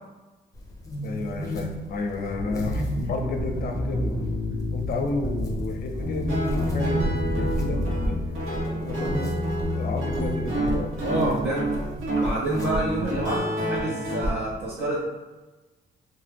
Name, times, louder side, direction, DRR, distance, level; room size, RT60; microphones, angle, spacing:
sound 1, 0.5-13.4, left 1 dB, 15° left, 0.7 m, -36 dB
voice 1, 1.0-4.2 4.7-8.2 8.7-9.3 9.7-10.9, left 3 dB, 50° left, 3 dB, 0.5 m, -31 dB
sound 2, 2.3-8.3, left 1 dB, 20° right, 0.8 m, -30 dB
Guitar, 6.0-14.3, equal, 85° right, 0.9 m, -28 dB
voice 2, 11.0-11.7 12.2-15.0, right 1 dB, 55° right, -6 dB, 0.6 m, -28 dB
2.7 x 2.2 x 3.4 m, 1.2 s
cardioid pair, 90°, 20 cm